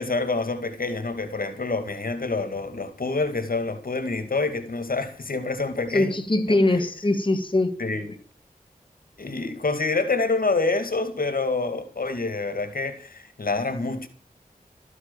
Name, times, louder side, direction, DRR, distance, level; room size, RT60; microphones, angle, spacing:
voice 1, 0.0-6.1 6.5-6.6 7.8-8.1 9.2-14.1, left 3 dB, 75° left, 2.2 m, -27 dB
voice 2, 5.9-7.7, left 2 dB, 35° left, 1.9 m, -22 dB
13.5 x 9.6 x 7.4 m
wide cardioid pair, 75°, 15 cm